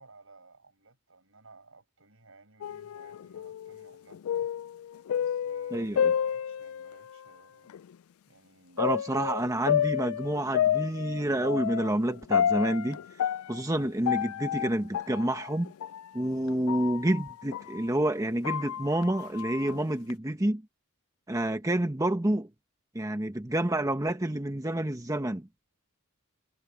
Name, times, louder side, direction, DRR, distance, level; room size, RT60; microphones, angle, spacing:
voice 1, 0.0-4.5 5.1-7.7 8.3-9.0, right 3 dB, 70° right, 7.8 m, -58 dB
sound 1, 2.6-7.2 7.7-7.8 8.8-17.8 18.2-20.1, left 9 dB, 80° left, 0.3 m, -31 dB
voice 2, 5.7-6.1 8.8-13.0 13.5-15.7 16.1-20.6 21.3-22.5 22.9-25.5, right 1 dB, 15° right, 1.0 m, -28 dB
head